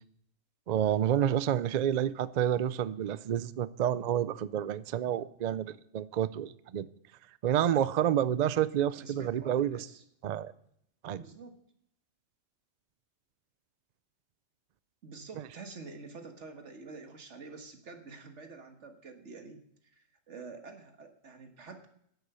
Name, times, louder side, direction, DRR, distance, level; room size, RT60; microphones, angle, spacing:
voice 1, 0.7-6.9 7.4-9.9 10.2-10.5 11.0-11.2, right 10 dB, 90° right, 0.3 m, -29 dB
voice 2, 8.9-10.0 11.1-11.6 15.0-19.6 19.9-21.9, right 4 dB, 60° right, 1.7 m, -48 dB
11.0 x 8.1 x 6.8 m
omnidirectional pair, 1.4 m